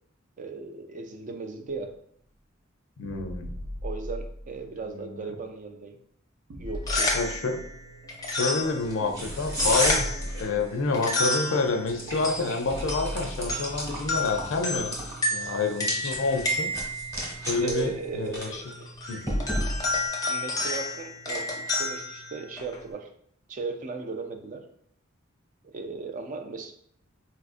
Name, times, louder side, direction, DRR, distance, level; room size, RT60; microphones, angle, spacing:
voice 1, 0.4-1.9 3.8-6.0 6.6-7.1 17.6-18.9 20.2-23.1 23.5-24.6 25.7-26.7, right 4 dB, 40° right, 5 dB, 0.4 m, -36 dB
voice 2, 3.0-3.5 4.9-5.3 7.1-7.6 8.3-15.0 15.3-16.7 17.5-18.6 19.1-19.2, left 3 dB, 65° left, 5 dB, 0.5 m, -28 dB
sound 1, 3.0-4.8 6.5-13.8, equal, 85° right, 0.5 m, -39 dB
sound 2, 6.7-22.9, left 2 dB, 20° left, 0.5 m, -32 dB
sound 3, 8.6-20.1, equal, 15° right, 1.0 m, -35 dB
4.0 x 2.4 x 2.5 m, 0.67 s
head